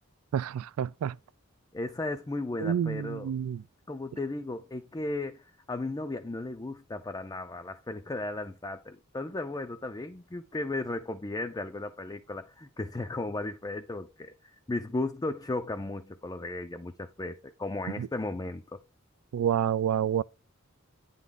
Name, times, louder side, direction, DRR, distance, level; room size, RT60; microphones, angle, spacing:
voice 1, 0.3-1.2 2.6-3.6 18.0-18.1 19.3-20.2, right 9 dB, 90° right, 0.3 m, -28 dB
voice 2, 1.7-3.3 3.9-14.3 14.7-18.8, left 2 dB, 15° left, 0.4 m, -35 dB
9.2 x 3.6 x 3.8 m
head